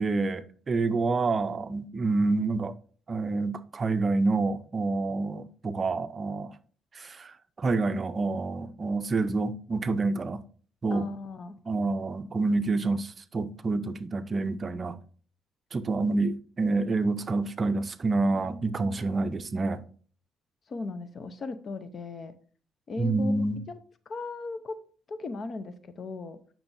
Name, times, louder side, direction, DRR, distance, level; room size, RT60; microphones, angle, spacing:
voice 1, 0.0-2.7 3.1-6.5 6.9-10.4 10.8-11.1 11.7-15.0 15.7-19.8 23.0-23.6, right 3 dB, 35° right, 0.5 m, -28 dB
voice 2, 10.9-11.6 20.7-22.3 22.9-23.8 24.1-24.8 25.1-26.4, left 3 dB, 50° left, 0.7 m, -37 dB
8.6 x 6.0 x 2.6 m
cardioid pair, 90°, 0 cm